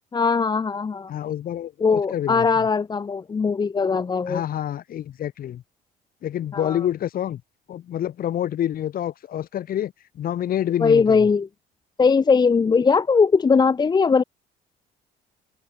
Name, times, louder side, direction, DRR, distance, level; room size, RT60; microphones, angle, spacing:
voice 1, 0.1-1.1 1.8-4.4 6.5-6.8 10.8-11.5 12.0-14.2, left 5 dB, 25° left, 0.9 m, -20 dB
voice 2, 1.1-2.6 4.3-5.6 6.2-7.4 7.7-11.3, left 11 dB, 60° left, 7.6 m, -28 dB
cardioid pair, 110°, 17 cm